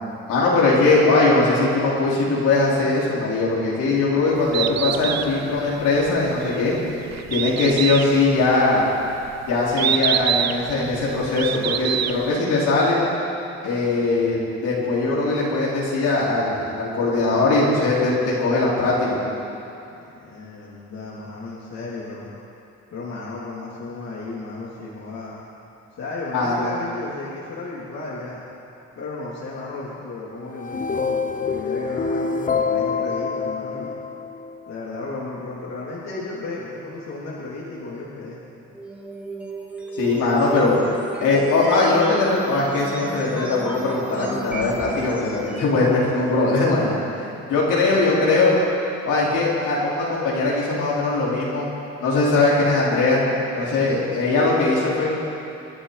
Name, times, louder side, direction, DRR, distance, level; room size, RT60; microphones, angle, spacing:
voice 1, 0.3-6.7 7.3-8.8 9.5-13.0 13.6-19.2 26.3-26.7 39.9-40.7 41.2-48.6 49.0-51.7 52.0-53.2 53.5-55.1, left 3 dB, 85° left, -7 dB, 4.4 m, -20 dB
Bird, 4.4-12.4, right 10 dB, 60° right, 0.7 m, -27 dB
voice 2, 20.0-22.3 22.9-25.4 25.9-28.4 29.0-34.0 34.7-38.4 47.6-48.1 53.7-54.1, left 3 dB, 60° left, -6 dB, 3.0 m, -34 dB
sound 1, 30.5-34.8, left 5 dB, 25° left, 0.7 m, -26 dB
sound 2, 38.7-45.9, right 3 dB, 5° right, 2.6 m, -34 dB
27.5 x 10.5 x 4.1 m, 2.8 s
cardioid pair, 90°, 30 cm